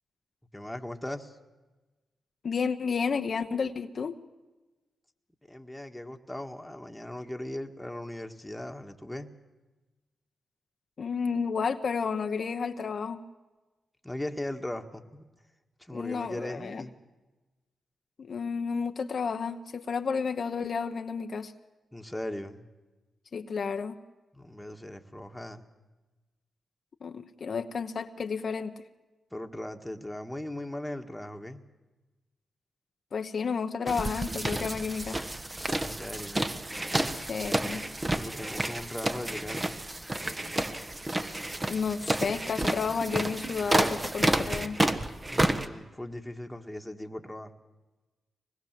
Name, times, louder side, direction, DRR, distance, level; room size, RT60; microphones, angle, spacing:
voice 1, 0.5-1.4 5.5-9.3 14.0-15.2 15.8-16.9 21.9-22.7 24.3-25.7 29.3-31.6 35.8-36.4 38.1-39.8 45.3-47.5, left 1 dB, 10° left, 4 dB, 1.8 m, -38 dB
voice 2, 2.4-4.2 11.0-13.2 15.9-16.8 18.2-21.5 23.3-24.0 27.0-28.7 33.1-35.2 37.1-37.9 41.6-44.8, left 5 dB, 60° left, 7 dB, 1.0 m, -31 dB
sound 1, 33.9-45.7, right 1 dB, 25° right, 1.5 m, -30 dB
24.5 x 20.5 x 7.6 m, 1.2 s
cardioid pair, 60°, 0 cm